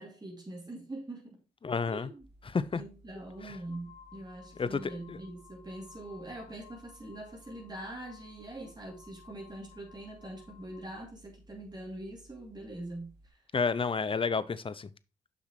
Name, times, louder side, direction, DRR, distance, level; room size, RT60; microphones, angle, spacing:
voice 1, 0.0-1.4 1.9-2.2 2.7-13.4, right 1 dB, 25° right, 2.7 m, -43 dB
voice 2, 1.6-2.1 2.4-2.8 3.4-3.6 4.6-5.2 13.5-14.9, left 5 dB, 30° left, 0.6 m, -31 dB
sound 1, 2.2-2.4 3.2-10.9, left 8 dB, 80° left, 1.3 m, -58 dB
sound 2, 2.2-13.3, right 1 dB, 70° right, 1.6 m, -59 dB
7.4 x 5.7 x 3.1 m
hypercardioid pair, 45°, 18 cm